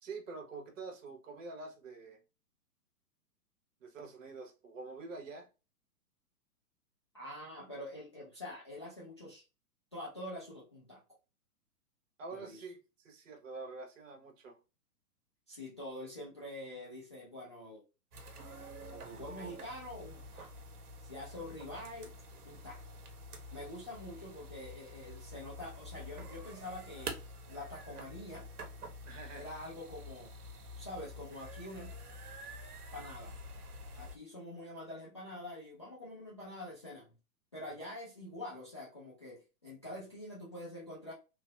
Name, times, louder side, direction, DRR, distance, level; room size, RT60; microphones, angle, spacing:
voice 1, 0.0-2.2 3.8-5.5 12.2-14.6 29.0-29.4, right 3 dB, 55° right, 3 dB, 1.1 m, -46 dB
voice 2, 7.1-9.4 9.9-11.0 12.3-12.6 15.5-17.8 18.8-20.5 21.0-22.1 22.4-22.8 23.5-28.5 29.3-30.4 30.8-32.0 32.9-33.4 34.0-37.1 37.5-41.1, left 1 dB, 20° left, -6 dB, 0.3 m, -46 dB
sound 1, 18.1-34.2, equal, 75° right, 0.9 m, -48 dB
3.0 x 2.7 x 2.3 m, 0.30 s
figure-of-eight pair, 120°, 45 cm